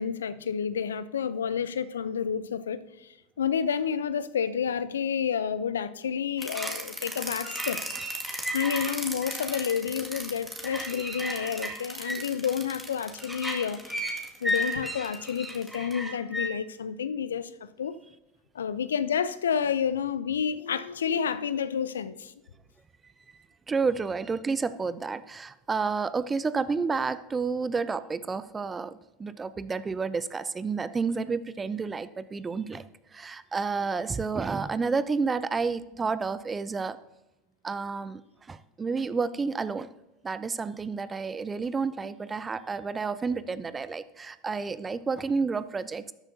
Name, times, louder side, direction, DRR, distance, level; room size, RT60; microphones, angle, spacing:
voice 1, 0.0-3.1 3.4-7.8 8.5-14.1 14.4-18.0 18.5-22.3, left 7 dB, 80° left, 0.5 m, -30 dB
sound 1, 6.4-16.5, equal, 5° right, 2.0 m, -34 dB
voice 2, 23.7-32.8 33.1-37.0 37.6-38.2 38.5-39.9 40.2-46.1, right 4 dB, 20° right, 0.6 m, -30 dB
13.0 x 10.5 x 2.7 m
hypercardioid pair, 80°, 0 cm